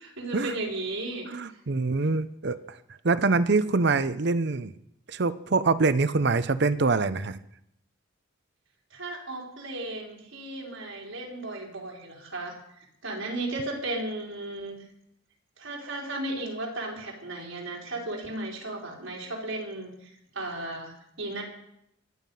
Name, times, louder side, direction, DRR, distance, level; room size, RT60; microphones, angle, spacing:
voice 1, 0.0-1.6 8.9-14.8 15.6-21.4, right 2 dB, 80° right, -1 dB, 4.3 m, -35 dB
voice 2, 1.3-2.8 3.0-4.7 5.1-7.4, right 3 dB, 55° right, 14 dB, 0.6 m, -25 dB
23.5 x 9.4 x 5.5 m, 0.76 s
head